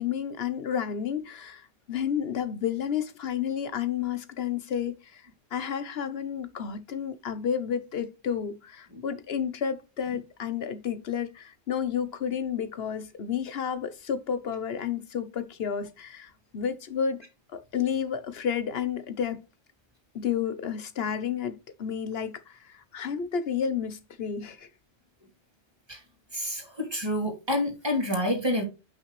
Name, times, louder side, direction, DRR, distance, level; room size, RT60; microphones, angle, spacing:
voice 1, 0.0-5.2 5.5-17.2 17.5-19.4 20.1-24.7, left 8 dB, 60° left, 1.1 m, -31 dB
voice 2, 26.3-28.6, left 1 dB, 20° right, 2.6 m, -28 dB
8.5 x 6.0 x 3.2 m
omnidirectional pair, 1.2 m